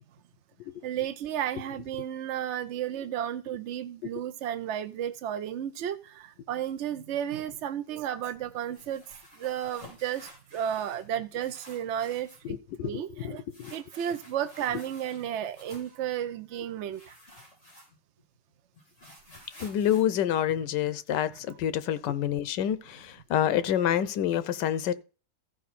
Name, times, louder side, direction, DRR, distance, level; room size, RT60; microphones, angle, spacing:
voice 1, 0.8-9.0 9.4-12.6 12.8-13.4 13.7-17.2, right 10 dB, 70° right, 0.6 m, -33 dB
sound 1, 8.6-11.1 11.3-12.5 13.5-16.0 16.9-18.2 18.5-21.2, left 1 dB, 45° left, 5.1 m, -52 dB
voice 2, 12.4-13.7 19.6-24.9, left 10 dB, 85° left, 1.4 m, -28 dB
14.5 x 5.1 x 4.2 m
omnidirectional pair, 1.8 m